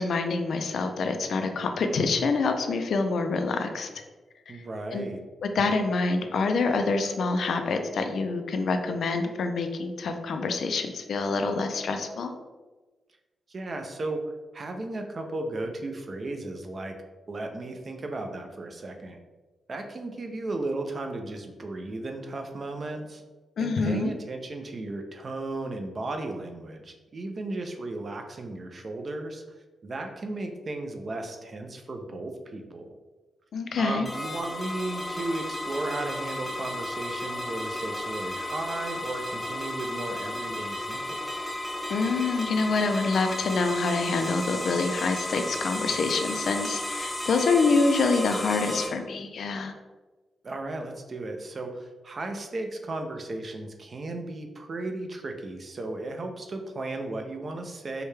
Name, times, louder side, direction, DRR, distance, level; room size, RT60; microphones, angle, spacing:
voice 1, 0.0-3.9 4.9-5.1 5.4-12.3 23.6-24.1 33.5-34.1 41.9-49.7, left 4 dB, 65° left, 6 dB, 0.4 m, -26 dB
voice 2, 4.5-5.2 13.5-14.2 14.5-17.0 17.3-19.2 19.7-23.2 23.6-29.4 29.8-32.9 33.8-41.2 50.4-58.0, right 2 dB, 35° right, 4 dB, 0.4 m, -35 dB
sound 1, 34.1-48.9, left 1 dB, 5° left, 0.6 m, -34 dB
4.6 x 2.2 x 3.2 m, 1.2 s
wide cardioid pair, 160°, 0 cm